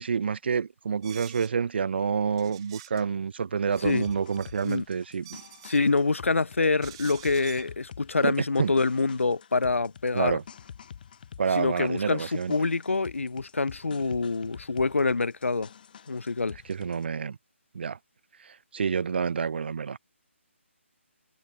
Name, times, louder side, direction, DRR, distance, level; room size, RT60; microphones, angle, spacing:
voice 1, 0.0-5.4 8.2-8.7 10.1-10.4 11.4-12.5 16.7-17.4 17.7-18.0 18.4-20.0, right 6 dB, 55° right, 0.5 m, -28 dB
sound 1, 1.0-1.6 2.4-3.0 3.5-4.8 5.1-5.9 6.8-7.7, right 16 dB, 25° right, 0.8 m, -48 dB
sound 2, 3.8-17.0, left 8 dB, 40° left, 3.2 m, -48 dB
voice 2, 5.6-10.3 11.6-15.7 16.1-16.6, left 3 dB, 80° left, 1.0 m, -26 dB
figure-of-eight pair, 155°, 7 cm